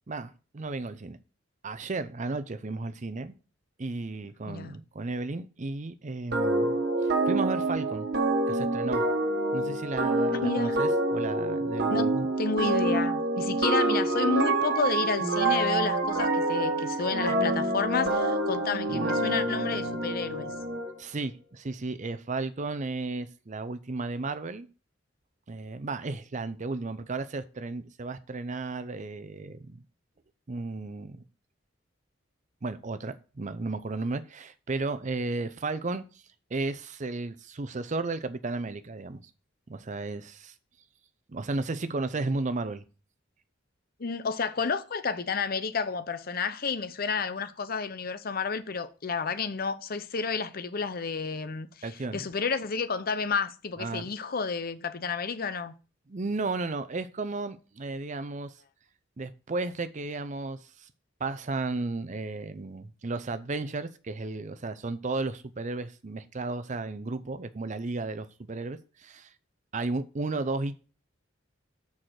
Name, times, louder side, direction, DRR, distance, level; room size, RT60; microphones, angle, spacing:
voice 1, 0.1-1.2 1.6-3.3 3.8-8.1 8.5-9.1 9.5-12.3 21.0-24.7 25.5-29.8 30.5-31.2 32.6-36.0 36.5-39.2 39.7-40.5 41.3-42.8 51.8-52.3 53.8-54.1 56.1-58.5 59.2-60.9 61.2-69.3 69.7-70.8, right 3 dB, 40° right, 0.6 m, -34 dB
sound 1, 6.3-20.9, right 2 dB, 55° right, 1.4 m, -27 dB
voice 2, 10.4-10.8 11.9-12.1 12.4-20.5 44.0-51.8 52.1-55.7, left 5 dB, 50° left, 0.7 m, -31 dB
6.6 x 4.8 x 5.9 m
head